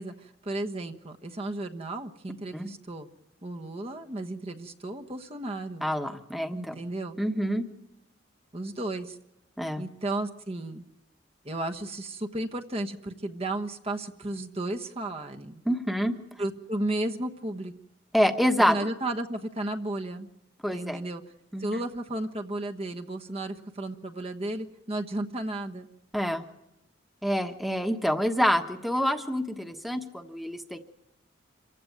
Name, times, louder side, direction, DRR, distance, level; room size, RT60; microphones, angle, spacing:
voice 1, 0.0-3.1 3.4-5.9 6.5-7.2 8.5-9.2 9.8-10.8 11.4-15.6 16.4-17.7 18.7-20.3 20.7-21.2 21.6-25.9, right 1 dB, 35° right, 4 dB, 1.2 m, -33 dB
voice 2, 5.8-6.8 7.2-7.6 9.6-9.8 15.7-16.1 18.1-18.8 20.6-21.0 21.5-21.7 26.1-26.4 27.2-30.8, equal, ahead, 7 dB, 1.2 m, -27 dB
26.5 x 15.5 x 9.3 m, 0.89 s
head